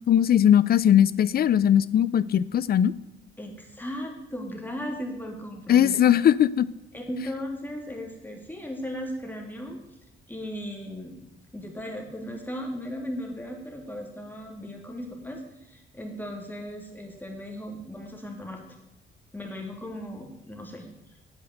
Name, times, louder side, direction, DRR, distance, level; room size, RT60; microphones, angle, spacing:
voice 1, 0.1-2.9 5.7-6.7, left 10 dB, 50° left, 19 dB, 0.5 m, -19 dB
voice 2, 3.4-6.1 6.9-9.8 10.3-11.2 11.5-18.6 19.3-20.9, equal, 10° left, 1 dB, 2.9 m, -36 dB
8.9 x 8.0 x 7.9 m, 0.92 s
cardioid pair, 90°, 20 cm